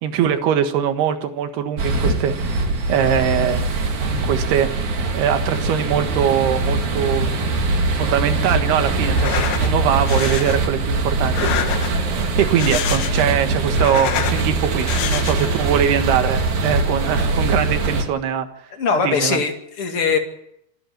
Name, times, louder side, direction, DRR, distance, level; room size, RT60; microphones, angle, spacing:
voice 1, 0.0-2.3 2.9-3.6 4.1-4.7 5.1-7.5 8.0-11.8 12.4-18.5 19.0-19.4, right 9 dB, 75° right, 7 dB, 3.5 m, -22 dB
sound 1, 1.8-18.0, right 3 dB, 50° right, 3.4 m, -22 dB
sound 2, 9.1-9.7 10.1-10.6 11.2-12.1 12.5-13.4 13.7-14.4 14.9-15.6, left 11 dB, 70° left, 2.8 m, -26 dB
voice 2, 18.7-20.2, left 5 dB, 40° left, 4 dB, 2.6 m, -21 dB
27.0 x 11.5 x 9.1 m, 0.77 s
omnidirectional pair, 4.9 m